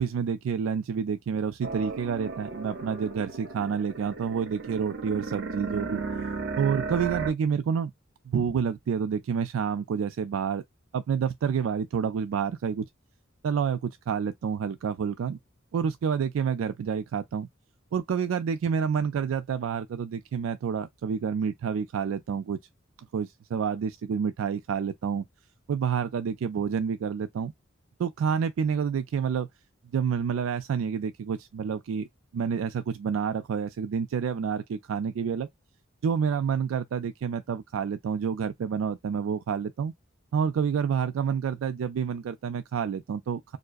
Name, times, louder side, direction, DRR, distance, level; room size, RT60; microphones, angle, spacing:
voice 1, 0.0-6.0 6.6-7.9 8.3-10.6 10.9-12.9 13.4-15.4 15.7-17.5 17.9-22.6 23.1-25.2 25.7-27.5 28.0-29.5 29.9-32.1 32.3-35.5 36.0-39.9 40.3-43.6, right 7 dB, 90° right, 0.3 m, -28 dB
sound 1, 1.6-7.3, right 4 dB, 55° right, 0.8 m, -35 dB
4.5 x 2.1 x 2.4 m
head